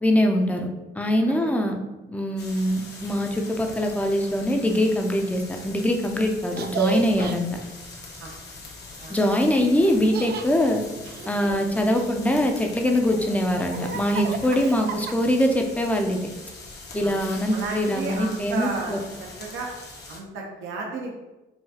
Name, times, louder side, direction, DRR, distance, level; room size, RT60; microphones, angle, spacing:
voice 1, 0.0-0.7 1.0-1.8 2.1-7.6 9.1-10.8 11.3-16.2 16.9-19.0, left 1 dB, 5° left, 2 dB, 0.6 m, -23 dB
sound 1, 2.4-20.2, left 3 dB, 60° left, 1.0 m, -42 dB
Laughter, 6.5-7.3 9.8-10.5 11.0-12.3 12.9-15.4, right 6 dB, 55° right, 0.4 m, -33 dB
voice 2, 17.5-19.0 19.4-19.7 20.1-21.1, right 3 dB, 80° right, 0 dB, 0.8 m, -33 dB
5.6 x 2.3 x 2.8 m, 1.1 s
cardioid pair, 90°, 20 cm